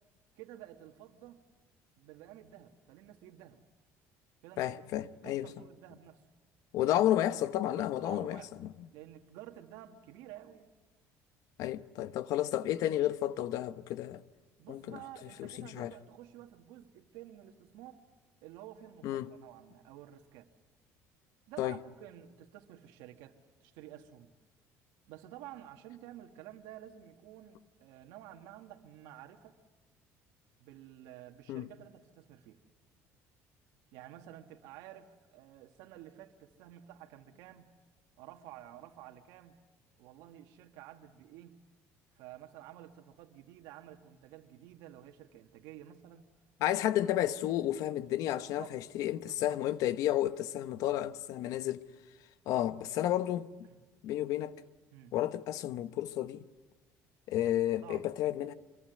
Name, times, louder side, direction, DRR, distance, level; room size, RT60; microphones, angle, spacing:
voice 1, 0.4-1.4 2.0-3.6 4.4-4.8 5.2-6.2 6.8-7.0 7.6-8.5 8.9-10.7 14.6-18.0 18.4-20.5 21.5-24.3 25.1-29.6 30.6-32.6 33.9-37.7 38.2-39.6 40.0-41.6 42.1-46.2 48.3-48.8 49.2-49.6 53.7-53.8 54.9-55.1 57.8-58.1, right 12 dB, 90° right, 1.9 m, -51 dB
voice 2, 4.6-5.5 6.7-8.7 11.6-14.2 14.7-15.0 15.4-15.9 19.0-19.3 21.6-21.8 31.5-31.7 46.6-51.8 52.5-53.5 54.0-54.5 55.1-56.4 57.3-58.5, left 13 dB, 70° left, 1.0 m, -32 dB
26.0 x 22.5 x 9.4 m
cardioid pair, 125°, 6 cm